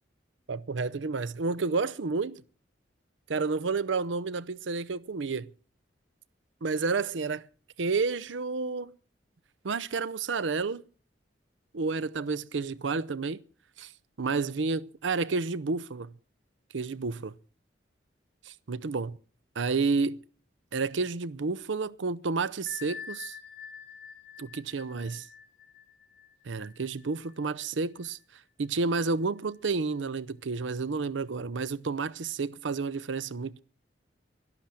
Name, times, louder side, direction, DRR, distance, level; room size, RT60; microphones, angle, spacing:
voice 1, 0.5-2.4 3.3-5.5 6.6-7.5 7.8-8.9 9.6-10.8 11.7-13.4 13.8-13.9 14.2-16.1 16.7-17.3 18.5-19.2 19.6-20.2 20.7-23.4 24.4-25.3 26.4-28.2 28.6-33.6, right 4 dB, 85° right, 0.6 m, -30 dB
Bell, 22.7-28.1, left 7 dB, 80° left, 3.3 m, -47 dB
12.0 x 11.5 x 7.6 m
head